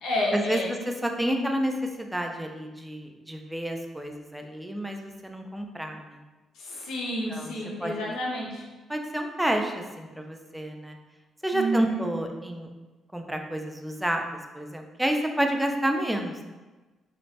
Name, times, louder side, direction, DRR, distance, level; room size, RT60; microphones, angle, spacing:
voice 1, 0.0-0.7 6.5-8.6 11.5-12.0, equal, 80° left, -3 dB, 0.7 m, -30 dB
voice 2, 1.0-6.2 7.3-7.5 7.8-8.2 8.9-11.0 11.4-12.7 13.1-14.3 14.5-16.5, right 1 dB, 5° right, 3 dB, 0.3 m, -29 dB
3.2 x 2.0 x 2.7 m, 1.2 s
cardioid pair, 90°, 0 cm